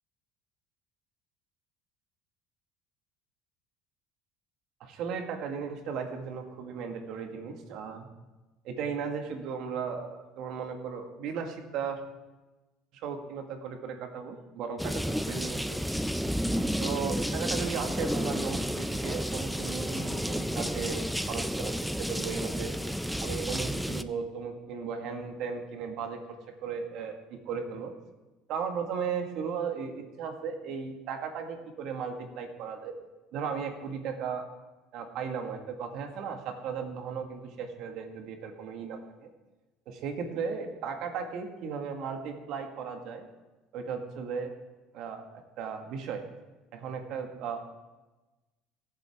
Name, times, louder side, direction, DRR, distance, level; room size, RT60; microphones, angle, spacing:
voice 1, 4.8-8.1 8.6-12.0 12.9-16.0 16.5-22.7 23.2-26.2 26.6-27.9 28.5-33.0 33.3-34.5 34.9-39.3 39.9-43.3 43.7-44.5 44.9-46.2 46.7-47.6, right 6 dB, 65° right, 4 dB, 1.7 m, -36 dB
sound 1, 14.8-24.0, equal, ahead, 0.4 m, -31 dB
18.0 x 7.7 x 3.6 m, 1.1 s
cardioid pair, 120°, 0 cm